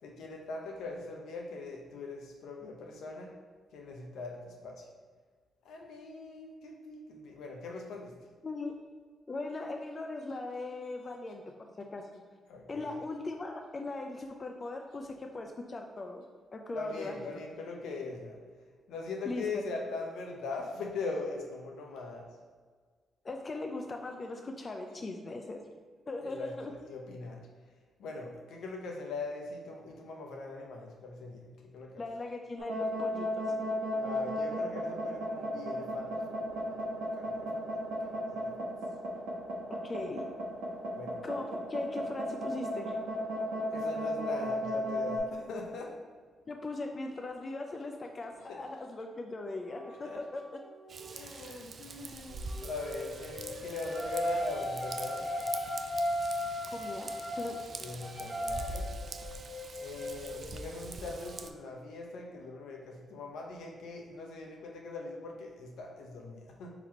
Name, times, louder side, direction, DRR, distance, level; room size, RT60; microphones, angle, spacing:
voice 1, 0.0-3.3 3.7-4.8 5.6-8.1 12.5-12.9 16.7-18.4 18.9-22.3 26.2-27.4 28.0-31.9 34.0-37.7 38.0-38.5 40.9-41.2 43.7-45.9 48.5-48.6 49.8-50.2 51.1-55.3 57.8-58.9 59.8-66.7, left 3 dB, 80° left, 0 dB, 0.7 m, -41 dB
voice 2, 8.4-8.8 9.3-12.2 12.7-16.2 16.5-17.2 19.3-19.6 23.2-25.6 26.1-26.7 32.0-33.4 39.7-40.2 41.2-43.0 46.5-50.4 56.7-57.1 57.4-57.6, left 2 dB, 40° left, 3 dB, 0.4 m, -39 dB
sound 1, 32.6-45.2, equal, 85° right, 0.9 m, -34 dB
sound 2, 49.6-51.1 52.3-61.4, left 1 dB, 20° right, 1.2 m, -37 dB
Raindrop / Vehicle horn car horn honking / Trickle dribble, 50.9-61.5, right 3 dB, 50° right, 0.3 m, -44 dB
4.0 x 2.9 x 4.3 m, 1.5 s
cardioid pair, 70°, 0 cm